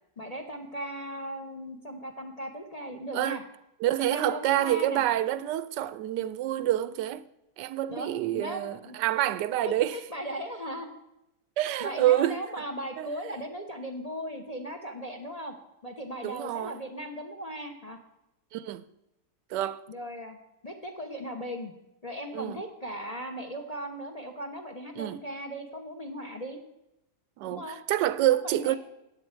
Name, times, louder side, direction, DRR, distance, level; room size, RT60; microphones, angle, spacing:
voice 1, 0.2-3.4 4.1-5.0 7.9-9.0 9.6-10.9 11.8-15.5 15.8-18.0 19.9-20.4 20.6-21.7 22.0-26.6 27.5-27.8 28.3-28.8, equal, 30° left, 0.8 m, -38 dB
voice 2, 3.8-7.2 7.6-10.0 11.6-12.4 13.0-13.1 16.2-16.8 18.5-18.8 19.5-19.8 22.3-22.6 25.0-25.2 27.4-28.8, right 13 dB, 85° right, 1.2 m, -27 dB
14.0 x 9.6 x 4.4 m
omnidirectional pair, 1.8 m